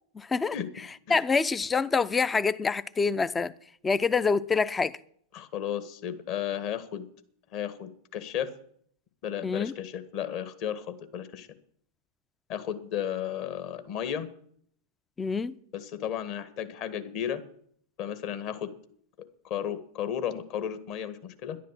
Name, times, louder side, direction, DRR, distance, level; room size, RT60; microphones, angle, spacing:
voice 1, 0.2-0.6 1.1-3.5 3.8-5.0 9.4-9.7 15.2-15.5, left 5 dB, 15° left, 0.5 m, -26 dB
voice 2, 5.3-7.0 7.5-8.5 9.2-11.5 12.5-14.3 15.7-17.4 18.0-18.7 19.4-21.6, left 9 dB, 45° left, 1.5 m, -34 dB
11.0 x 11.0 x 7.5 m
figure-of-eight pair, 90°, 0 cm